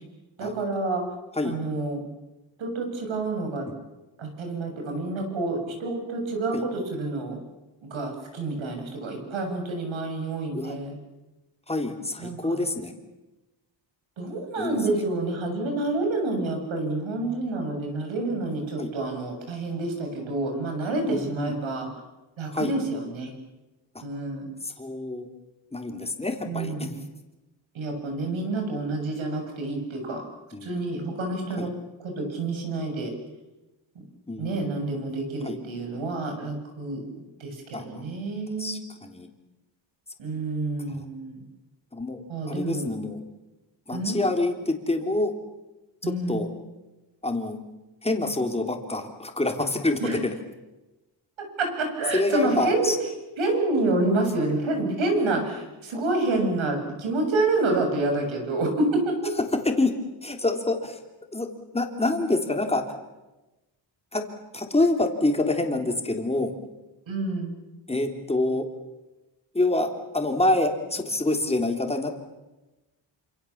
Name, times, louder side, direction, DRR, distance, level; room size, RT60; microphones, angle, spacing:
voice 1, 0.4-1.0 1.4-2.0 2.6-3.7 4.2-7.4 7.9-11.0 12.2-12.6 14.2-21.9 22.4-23.3 24.0-24.5 26.5-26.9 27.7-30.2 30.6-31.7 32.0-33.1 34.4-38.8 40.2-41.4 42.3-42.9 43.9-44.2 46.0-46.5 50.0-50.2 51.6-52.9 53.4-59.1 67.1-67.6, right 2 dB, 80° right, 4 dB, 7.5 m, -28 dB
voice 2, 11.7-12.9 14.6-14.8 18.8-18.9 21.1-21.5 22.5-22.7 24.6-25.3 25.7-26.7 30.5-30.7 31.6-31.7 34.3-34.7 35.4-35.6 37.7-38.0 38.6-39.3 40.9-41.0 41.9-43.2 43.9-45.3 46.0-46.5 47.2-47.6 48.0-50.3 52.1-53.0 59.6-59.9 60.2-61.0 61.3-61.5 61.7-62.8 64.1-64.2 64.5-66.5 67.9-68.6 69.5-72.2, left 2 dB, 15° left, 4 dB, 3.3 m, -26 dB
28.0 x 27.0 x 7.3 m, 1.1 s
wide cardioid pair, 145°, 46 cm